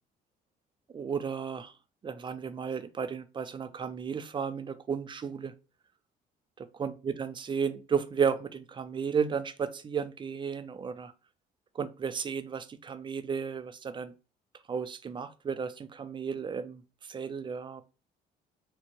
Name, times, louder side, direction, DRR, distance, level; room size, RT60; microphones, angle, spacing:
voice 1, 0.9-1.7 2.0-5.5 6.8-11.1 11.8-14.1 14.7-16.8 17.1-17.8, right 6 dB, 30° right, 0.4 m, -33 dB
4.3 x 2.1 x 2.9 m
cardioid pair, 110°, 17 cm